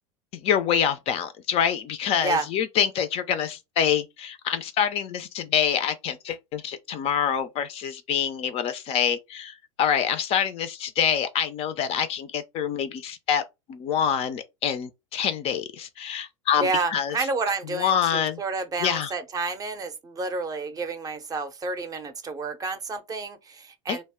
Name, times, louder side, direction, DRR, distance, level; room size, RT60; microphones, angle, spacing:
voice 1, 0.3-13.4 13.7-17.2 17.7-18.4 18.8-19.1 23.9-24.0, left 8 dB, 35° left, 0.4 m, -26 dB
voice 2, 16.6-24.0, right 3 dB, 20° right, 0.5 m, -30 dB
2.0 x 2.0 x 3.5 m
figure-of-eight pair, 80°, 17 cm